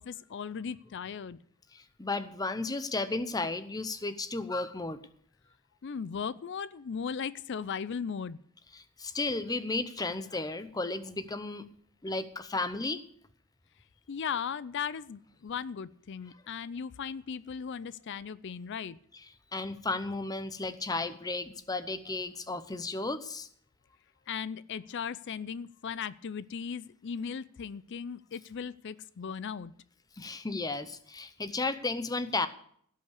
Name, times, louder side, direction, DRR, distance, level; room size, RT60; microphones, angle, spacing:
voice 1, 0.0-1.4 5.8-8.4 14.1-19.0 24.3-29.7, left 6 dB, 50° left, 17 dB, 0.4 m, -37 dB
voice 2, 1.7-5.0 8.7-11.6 12.0-13.0 19.5-23.5 30.2-32.5, left 3 dB, 15° left, 12 dB, 0.7 m, -34 dB
17.0 x 5.7 x 8.1 m, 0.64 s
head